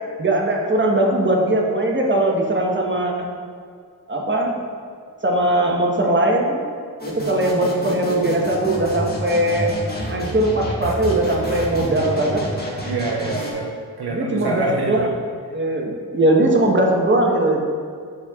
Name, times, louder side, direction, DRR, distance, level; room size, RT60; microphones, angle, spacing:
voice 1, 0.2-3.3 4.1-4.6 5.2-6.6 7.1-9.7 10.1-12.5 14.1-15.1 15.5-17.6, right 1 dB, 30° right, -1 dB, 1.2 m, -20 dB
sound 1, 7.0-13.5, equal, 25° left, 1.4 m, -29 dB
voice 2, 12.8-15.1, right 3 dB, 65° right, 0 dB, 0.7 m, -26 dB
11.5 x 4.4 x 2.4 m, 2.2 s
cardioid pair, 45°, 41 cm